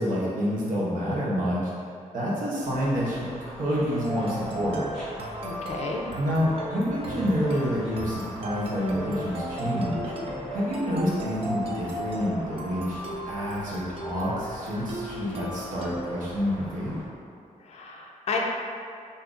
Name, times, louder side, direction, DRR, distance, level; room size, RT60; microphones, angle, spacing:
voice 1, 0.0-1.7 2.1-4.9 6.2-10.1 10.5-13.0 13.3-16.9, equal, 80° right, -6 dB, 0.8 m, -28 dB
sound 1, 2.6-17.1, left 1 dB, ahead, 0.9 m, -43 dB
sound 2, 3.9-16.0, right 1 dB, 45° right, 0.4 m, -36 dB
voice 2, 5.4-6.0 17.6-18.4, left 4 dB, 55° left, 0 dB, 0.4 m, -32 dB
3.7 x 2.7 x 2.4 m, 2.4 s
wide cardioid pair, 175°, 13 cm